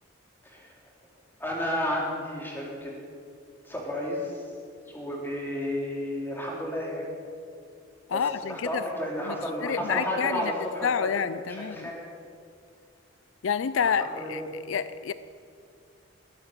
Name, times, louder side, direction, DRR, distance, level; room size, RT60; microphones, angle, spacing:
voice 1, 1.4-2.9 3.6-4.4 4.9-7.1 8.1-8.2 8.5-12.0 13.8-14.5, left 1 dB, 10° left, -3 dB, 3.3 m, -32 dB
voice 2, 8.1-8.8 9.3-9.4 9.6-10.5 10.8-11.9 13.4-14.4 14.7-15.1, left 7 dB, 75° left, 15 dB, 0.4 m, -28 dB
20.5 x 9.4 x 7.5 m, 2.3 s
head